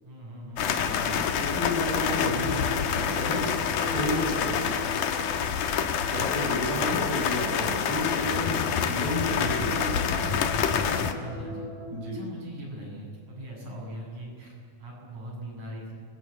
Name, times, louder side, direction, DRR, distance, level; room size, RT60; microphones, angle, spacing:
voice 1, 0.0-0.7 2.2-2.8 6.8-7.1 11.1-11.7 12.0-15.9, right 1 dB, 65° right, -3 dB, 9.1 m, -40 dB
sound 1, 0.6-11.1, left 7 dB, 80° left, 2.9 m, -27 dB
voice 2, 0.9-2.6 3.0-3.5 3.8-4.8 6.1-10.0 11.9-12.2, left 1 dB, 30° right, -1 dB, 5.1 m, -32 dB
sound 2, 1.7-11.9, left 1 dB, 55° left, 6.5 m, -41 dB
30.0 x 21.5 x 8.6 m, 2.1 s
omnidirectional pair, 3.6 m